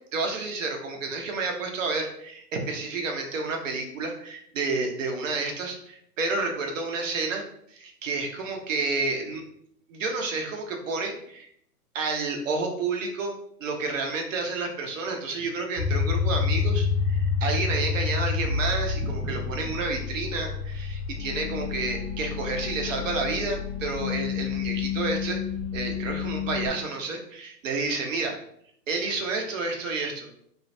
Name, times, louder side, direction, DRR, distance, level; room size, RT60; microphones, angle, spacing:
voice 1, 0.1-9.4 9.9-11.5 11.9-25.4 25.7-28.4 28.9-30.3, right 3 dB, 55° right, 2 dB, 0.7 m, -30 dB
sound 1, 15.8-26.7, left 6 dB, 70° left, 0.7 m, -29 dB
2.5 x 2.1 x 2.6 m, 0.68 s
hypercardioid pair, 135°, 48 cm